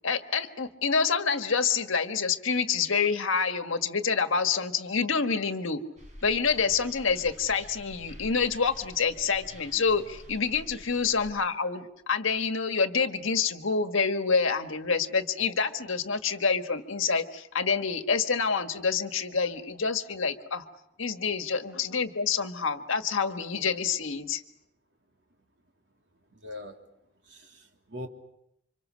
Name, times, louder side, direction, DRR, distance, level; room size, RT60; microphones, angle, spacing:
voice 1, 0.0-5.8 6.2-20.6 21.0-24.4, left 5 dB, 75° left, 8 dB, 1.6 m, -27 dB
sound 1, 6.0-11.3, equal, 35° right, 6.1 m, -48 dB
voice 2, 26.3-26.8 27.3-28.1, left 1 dB, 55° right, 3 dB, 3.2 m, -42 dB
29.5 x 26.0 x 6.4 m, 0.79 s
head